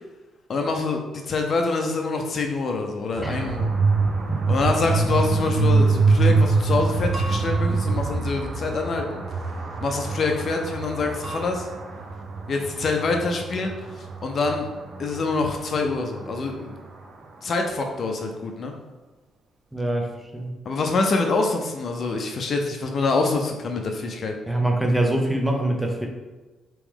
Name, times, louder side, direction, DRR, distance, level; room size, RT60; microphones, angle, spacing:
voice 1, 0.5-3.7 4.5-9.2 9.8-11.7 12.5-13.7 14.2-14.7 15.0-16.8 17.4-18.7 20.6-24.3, left 3 dB, 50° left, 3 dB, 0.6 m, -25 dB
sound 1, 3.2-17.1, right 4 dB, 65° right, 0.8 m, -25 dB
sound 2, 7.1-8.7 11.2-11.5, right 2 dB, 30° right, 1.0 m, -38 dB
voice 2, 19.7-20.5 24.5-26.1, right 1 dB, 5° right, 1 dB, 0.8 m, -24 dB
4.6 x 3.0 x 3.6 m, 1.2 s
cardioid pair, 90°, 0 cm